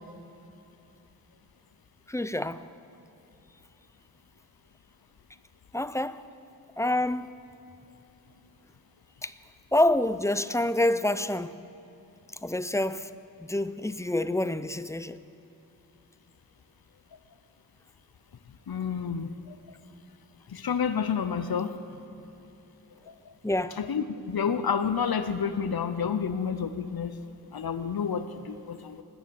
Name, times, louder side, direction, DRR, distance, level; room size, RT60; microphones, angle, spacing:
voice 1, 2.1-2.6 5.7-6.2 6.8-7.3 9.2-9.3 9.7-11.5 12.4-13.1 13.5-15.2 23.4-23.8, left 1 dB, 10° left, 0.5 m, -27 dB
voice 2, 18.7-19.3 20.5-21.7 23.1-23.2 23.8-27.1 27.5-29.0, left 6 dB, 80° left, 0.7 m, -29 dB
20.0 x 9.3 x 7.0 m
wide cardioid pair, 65°, 36 cm